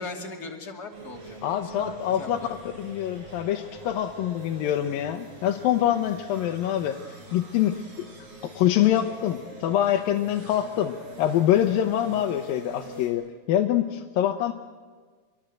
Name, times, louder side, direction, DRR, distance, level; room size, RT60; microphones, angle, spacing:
voice 1, 0.0-2.6, left 3 dB, 30° left, 3 dB, 2.6 m, -39 dB
sound 1, 0.9-13.1, right 2 dB, 40° right, 6.0 m, -44 dB
voice 2, 1.4-2.5 2.8-7.8 8.4-14.5, left 11 dB, 75° left, 4 dB, 2.6 m, -25 dB
26.5 x 23.0 x 7.8 m, 1.5 s
omnidirectional pair, 4.3 m